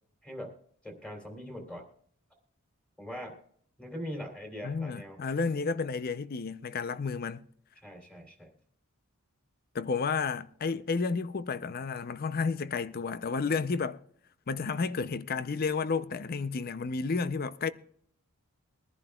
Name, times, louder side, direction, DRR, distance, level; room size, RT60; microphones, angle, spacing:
voice 1, 0.2-0.5 0.8-1.8 3.0-3.4 3.8-5.2 7.8-8.5, equal, 5° left, 3.1 m, -41 dB
voice 2, 4.6-7.4 9.7-14.0 14.5-17.7, left 4 dB, 45° left, 0.5 m, -31 dB
22.5 x 11.0 x 2.3 m
head